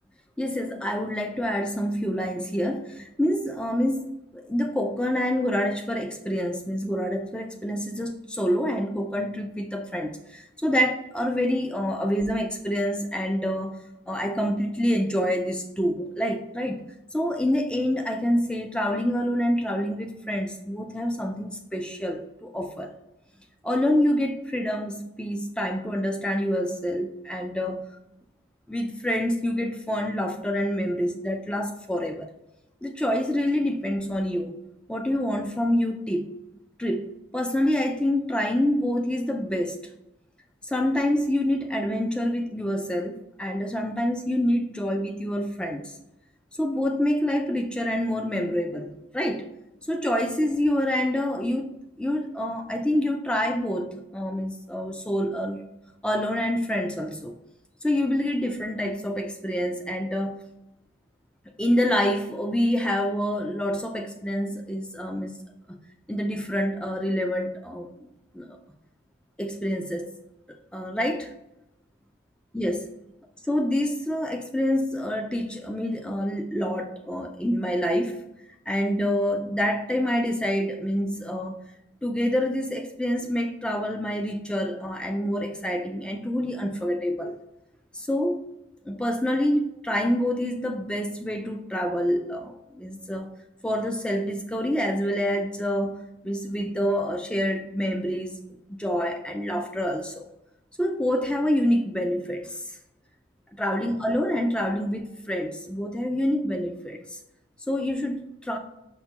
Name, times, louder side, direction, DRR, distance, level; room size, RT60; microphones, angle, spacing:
voice 1, 0.4-13.8 14.1-16.9 17.1-22.9 23.6-27.8 28.7-32.3 32.8-34.6 34.9-36.3 36.8-39.8 40.6-45.9 46.6-49.5 49.9-55.7 56.0-57.4 57.8-60.4 61.6-65.4 65.7-65.8 66.1-67.9 68.3-68.6 69.4-70.1 70.7-71.3 72.5-72.8 73.5-78.2 78.7-81.6 82.0-87.4 87.9-88.4 88.9-93.3 93.6-98.4 98.7-100.3 100.8-102.7 103.6-107.2 107.7-108.6, equal, 5° left, 5 dB, 0.3 m, -27 dB
5.4 x 2.2 x 4.4 m, 0.87 s
head